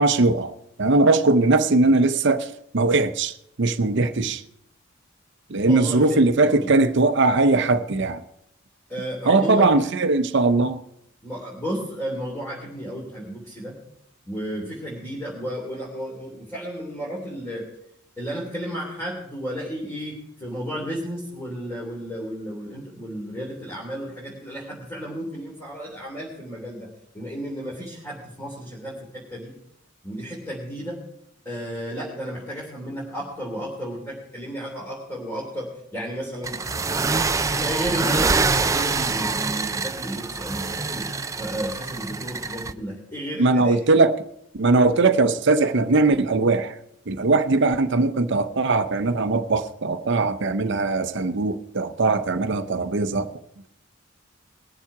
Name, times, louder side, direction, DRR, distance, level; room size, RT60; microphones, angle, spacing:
voice 1, 0.0-4.4 5.5-8.2 9.3-10.8 43.4-44.1 44.5-46.7 47.1-53.3, right 3 dB, 60° right, 0.7 m, -20 dB
voice 2, 5.7-6.7 8.9-9.7 11.2-13.7 14.3-17.6 18.2-20.1 20.4-26.9 27.1-29.5 30.0-31.0 31.4-35.7 35.9-36.6 37.4-41.0 41.4-43.8, equal, 15° left, 3.1 m, -32 dB
sound 1, 36.4-42.7, right 4 dB, 15° right, 0.3 m, -25 dB
20.5 x 7.3 x 4.8 m
head